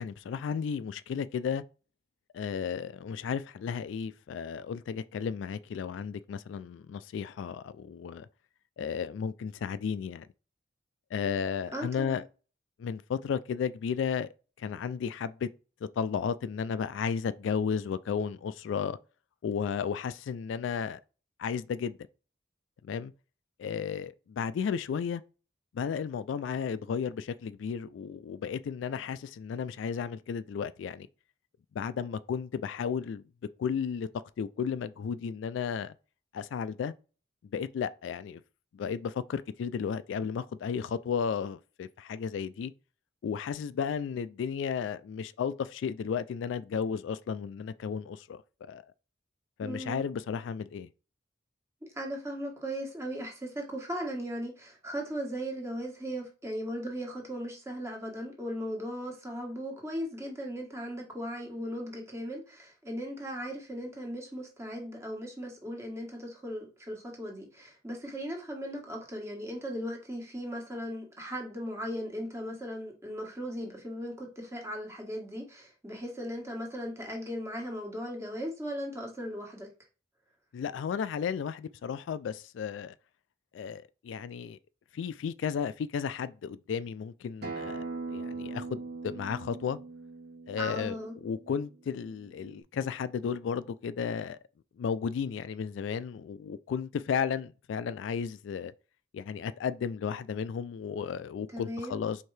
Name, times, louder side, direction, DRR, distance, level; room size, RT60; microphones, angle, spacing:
voice 1, 0.0-1.6 2.3-8.3 8.8-10.3 11.1-12.2 12.8-14.3 14.6-15.5 15.8-19.0 19.4-21.0 21.4-22.0 22.8-23.1 23.6-25.2 25.7-31.1 31.7-33.2 33.6-34.1 34.4-35.9 36.3-36.9 37.5-38.4 38.7-42.7 43.2-48.8 49.6-50.9 80.5-82.9 83.5-84.6 84.9-87.8 88.1-89.8 90.5-94.4 94.8-98.7 99.1-102.2, left 6 dB, 80° left, 0.3 m, -33 dB
voice 2, 11.7-12.2 49.6-50.0 51.9-79.7 90.6-91.1 101.5-102.0, equal, 15° right, 1.3 m, -37 dB
Acoustic guitar, 87.4-92.6, right 3 dB, 55° right, 1.2 m, -41 dB
4.5 x 3.6 x 3.2 m
head